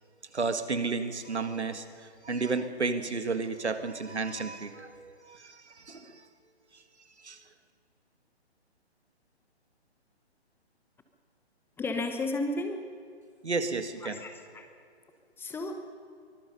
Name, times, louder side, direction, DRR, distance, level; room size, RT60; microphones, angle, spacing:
voice 1, 0.3-6.2 7.2-7.4 13.4-14.2, right 4 dB, 85° right, 9 dB, 2.1 m, -32 dB
voice 2, 11.8-12.9 14.0-14.7 15.4-15.8, left 2 dB, 5° left, 6 dB, 0.9 m, -33 dB
24.0 x 21.5 x 5.5 m, 2.3 s
figure-of-eight pair, 135°, 33 cm